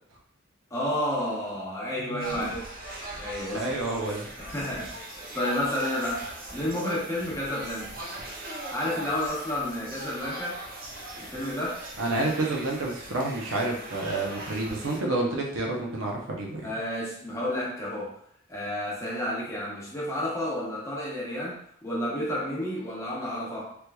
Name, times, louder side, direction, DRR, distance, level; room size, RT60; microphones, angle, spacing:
voice 1, 0.7-2.7 3.2-3.7 4.4-7.9 8.7-10.6 11.2-11.9 16.6-18.2 18.5-23.8, left 1 dB, 15° left, -6 dB, 0.8 m, -31 dB
voice 2, 2.0-2.5 3.5-4.3 12.0-16.8, right 2 dB, 80° right, -1 dB, 0.8 m, -29 dB
sound 1, 2.2-15.0, right 2 dB, 45° right, 0.6 m, -40 dB
3.4 x 3.0 x 2.3 m, 0.64 s
head